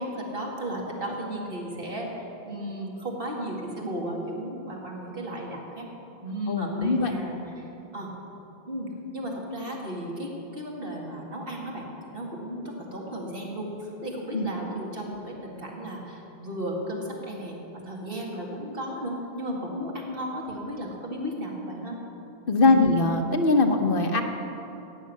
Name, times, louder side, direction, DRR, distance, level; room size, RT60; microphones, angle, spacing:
voice 1, 0.0-5.9 6.2-8.1 8.7-11.9 12.1-22.0 22.6-22.8, equal, 65° right, -2 dB, 2.4 m, -34 dB
voice 2, 6.5-7.1 14.3-14.5 22.5-24.2, left 3 dB, 65° left, 4 dB, 1.2 m, -21 dB
16.0 x 6.5 x 9.4 m, 2.9 s
omnidirectional pair, 1.0 m